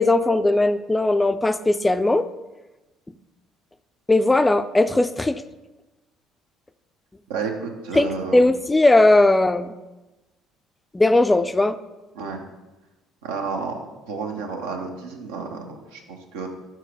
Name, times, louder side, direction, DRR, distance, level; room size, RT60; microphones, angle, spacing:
voice 1, 0.0-2.3 4.1-5.4 7.9-9.7 10.9-11.8, left 2 dB, 15° left, 12 dB, 0.3 m, -18 dB
voice 2, 7.3-8.4 12.1-12.4 13.2-16.5, right 4 dB, 80° right, 3 dB, 0.7 m, -31 dB
4.6 x 4.5 x 4.8 m, 1.1 s
hypercardioid pair, 60°, 0 cm